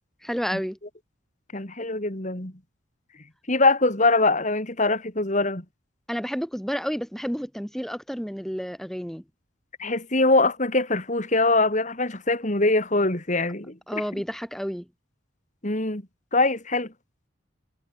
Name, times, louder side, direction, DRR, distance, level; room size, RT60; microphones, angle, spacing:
voice 1, 0.2-0.8 6.1-9.2 13.9-14.9, equal, ahead, 6.3 m, -30 dB
voice 2, 1.5-2.5 3.5-5.6 9.8-13.8 15.6-16.0 16.3-16.9, left 2 dB, 40° left, 3.1 m, -23 dB
head